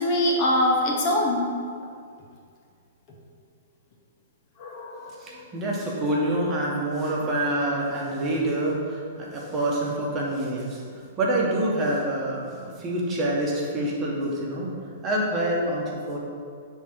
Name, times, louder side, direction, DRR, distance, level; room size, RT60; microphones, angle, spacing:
voice 1, 0.0-1.4 4.6-5.4 9.4-9.5, left 1 dB, 40° left, -1 dB, 1.1 m, -24 dB
voice 2, 5.2-10.8 11.2-14.7 15.0-16.2, right 1 dB, 25° right, -3 dB, 1.3 m, -26 dB
8.0 x 3.7 x 4.7 m, 2.2 s
hypercardioid pair, 140°, 0 cm